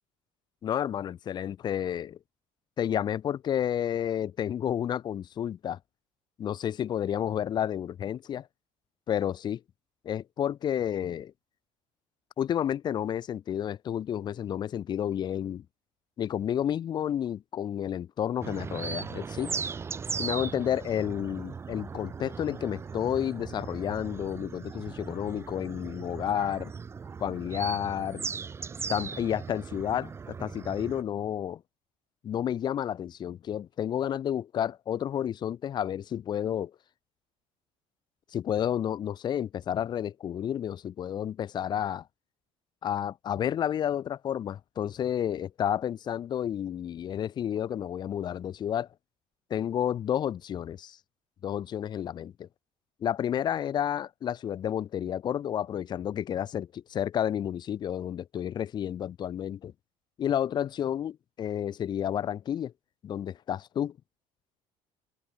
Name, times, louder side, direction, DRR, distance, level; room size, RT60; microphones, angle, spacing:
voice 1, 0.6-2.2 2.8-5.8 6.4-8.5 9.1-9.6 10.0-11.3 12.4-15.6 16.2-19.5 20.2-26.7 27.2-28.3 28.9-31.6 32.2-36.7 38.3-42.1 42.8-48.9 49.5-51.0 51.4-52.5 53.0-59.7 60.2-62.7 63.0-64.0, left 10 dB, 35° left, 0.6 m, -31 dB
sound 1, 18.4-31.0, right 5 dB, 20° right, 0.5 m, -38 dB
cardioid pair, 140°, 13 cm